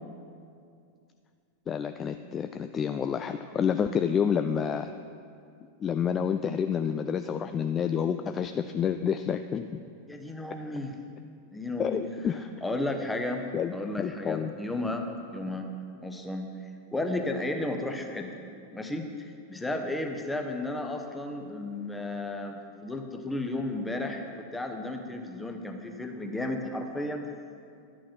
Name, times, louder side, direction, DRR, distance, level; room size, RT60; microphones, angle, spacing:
voice 1, 1.7-4.9 5.8-9.8 11.8-12.4 13.5-13.7 14.0-14.5, left 7 dB, 25° left, 9 dB, 0.3 m, -29 dB
voice 2, 10.1-11.0 11.5-12.0 12.6-13.4 13.7-15.7 16.0-16.5 16.9-18.3 18.7-27.2, left 2 dB, 5° left, 4 dB, 1.0 m, -33 dB
11.5 x 6.3 x 6.0 m, 2.4 s
figure-of-eight pair, 90°, 0 cm